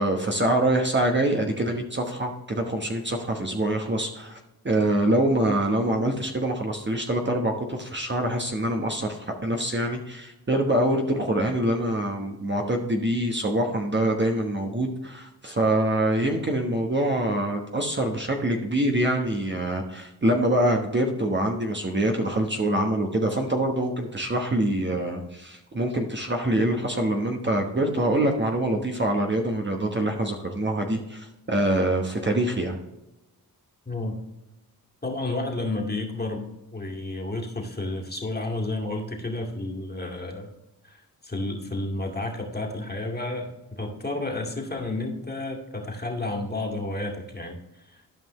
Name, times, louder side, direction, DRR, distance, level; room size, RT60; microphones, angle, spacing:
voice 1, 0.0-4.4 4.6-32.8, right 1 dB, 30° right, 2 dB, 1.2 m, -25 dB
voice 2, 33.9-34.2 35.0-40.5 40.8-48.0, left 2 dB, 25° left, 0 dB, 2.2 m, -31 dB
12.5 x 5.4 x 3.1 m, 0.98 s
cardioid pair, 55°, 39 cm